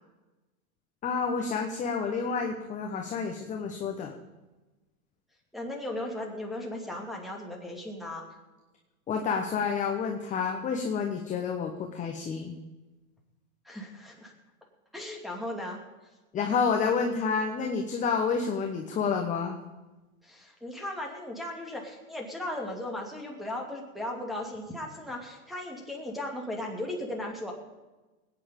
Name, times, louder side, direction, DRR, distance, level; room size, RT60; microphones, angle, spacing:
voice 1, 1.0-4.1 9.1-12.5 16.3-19.6, left 5 dB, 15° left, 3 dB, 1.1 m, -29 dB
voice 2, 5.5-8.2 13.6-14.3 14.9-15.8 20.2-27.5, left 1 dB, ahead, 1 dB, 2.5 m, -36 dB
20.0 x 9.2 x 5.3 m, 1.1 s
hypercardioid pair, 135°, 43 cm